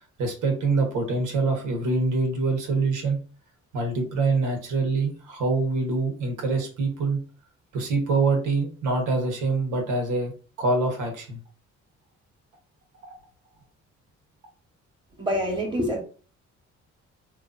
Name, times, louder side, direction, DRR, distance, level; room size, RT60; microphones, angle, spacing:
voice 1, 0.2-3.2 3.7-7.2 7.7-10.3 10.6-11.4, right 3 dB, 80° right, 1.1 m, -25 dB
voice 2, 15.2-16.0, equal, 15° right, 1.2 m, -26 dB
2.9 x 2.5 x 2.5 m
cardioid pair, 90°, 30 cm